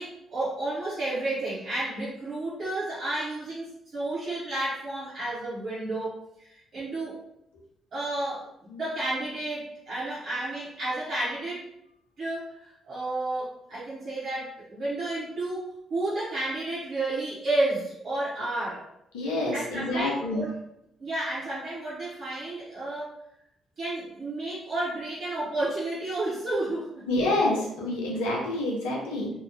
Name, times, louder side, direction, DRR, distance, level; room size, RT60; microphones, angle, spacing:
voice 1, 0.0-7.2 7.9-11.7 12.2-18.8 19.5-20.5 21.0-23.1 23.8-27.0, right 2 dB, 50° right, -9 dB, 0.8 m, -31 dB
voice 2, 19.1-20.5 27.1-29.3, left 2 dB, 70° left, -3 dB, 0.6 m, -27 dB
2.8 x 2.2 x 2.5 m, 0.80 s
figure-of-eight pair, 40°, 0 cm